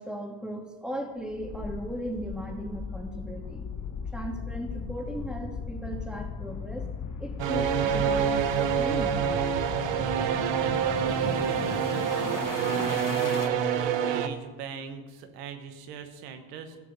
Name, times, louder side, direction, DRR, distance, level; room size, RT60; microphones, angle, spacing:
voice 1, 0.0-3.7 4.1-6.9 7.2-9.2, equal, ahead, 1 dB, 2.8 m, -37 dB
sound 1, 1.3-13.5, left 5 dB, 40° left, 1.1 m, -37 dB
sound 2, 7.4-14.3, right 8 dB, 65° right, 1.1 m, -27 dB
voice 2, 10.0-16.8, right 6 dB, 90° right, 8 dB, 1.2 m, -41 dB
15.0 x 6.4 x 5.4 m, 1.3 s
hypercardioid pair, 50°, 48 cm